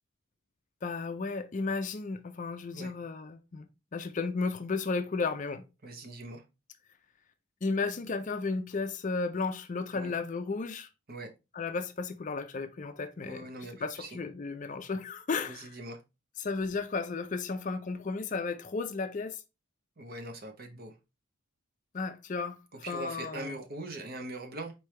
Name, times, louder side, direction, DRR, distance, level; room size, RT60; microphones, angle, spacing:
voice 1, 0.8-5.6 7.6-10.9 11.5-13.5 13.8-15.7 16.4-19.4 21.9-22.6 22.9-23.6, left 4 dB, 35° left, 0.4 m, -34 dB
voice 2, 5.8-6.4 9.9-10.2 11.1-11.3 13.2-14.2 15.5-16.0 20.0-20.9 22.7-24.7, right 2 dB, 45° right, 0.8 m, -42 dB
4.4 x 3.3 x 3.2 m
head